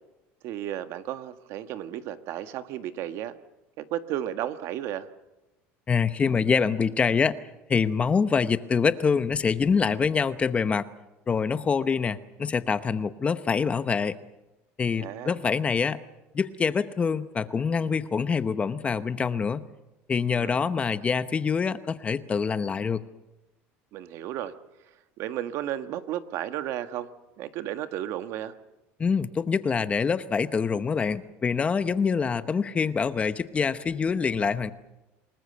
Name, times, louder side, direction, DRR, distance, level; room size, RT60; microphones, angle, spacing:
voice 1, 0.4-3.4 3.8-5.1 15.0-15.4 20.3-20.6 23.9-24.5 25.2-27.1 27.4-28.5, right 12 dB, 60° right, 9 dB, 1.5 m, -33 dB
voice 2, 5.9-10.8 11.3-14.2 14.8-16.0 16.3-19.6 20.1-23.0 29.0-34.7, left 5 dB, 25° left, 13 dB, 0.9 m, -25 dB
28.0 x 20.0 x 6.9 m, 0.99 s
cardioid pair, 130°, 5 cm